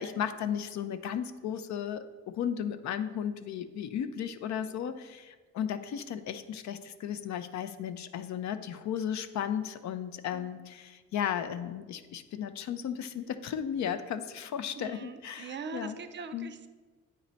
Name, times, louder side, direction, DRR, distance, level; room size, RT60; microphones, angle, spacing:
voice 1, 0.0-16.0 16.3-16.5, left 8 dB, 65° left, 11 dB, 0.5 m, -35 dB
voice 2, 10.3-10.6 14.8-16.7, right 5 dB, 40° right, 9 dB, 0.4 m, -42 dB
8.8 x 3.1 x 4.0 m, 1.3 s
cardioid pair, 90°, 30 cm